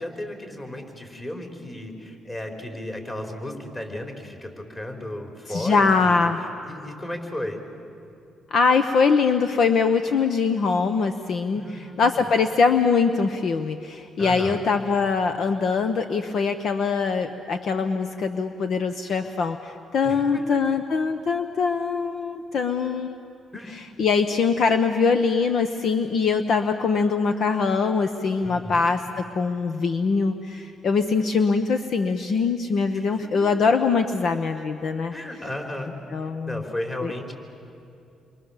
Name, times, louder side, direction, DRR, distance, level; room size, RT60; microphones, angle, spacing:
voice 1, 0.0-6.2 6.6-7.6 11.5-12.2 14.2-14.6 20.0-20.6 23.5-23.8 28.4-28.9 32.9-33.2 35.1-37.3, left 1 dB, 25° left, 3 dB, 4.4 m, -34 dB
voice 2, 5.5-6.4 8.5-23.2 23.7-35.1 36.1-36.6 37.0-37.1, left 5 dB, 60° left, 8 dB, 1.0 m, -23 dB
28.5 x 24.0 x 7.3 m, 2.6 s
cardioid pair, 90°, 0 cm